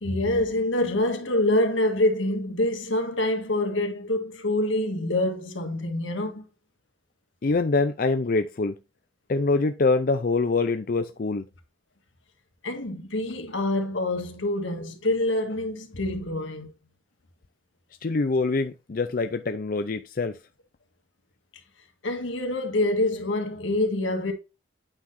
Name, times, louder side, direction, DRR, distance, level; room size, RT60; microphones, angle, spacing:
voice 1, 0.0-6.5 12.6-16.7 22.0-24.3, left 1 dB, 85° left, 1.7 m, -26 dB
voice 2, 7.4-8.7 9.3-11.5 18.0-20.4, left 3 dB, 50° left, 0.5 m, -24 dB
8.9 x 5.8 x 2.6 m
head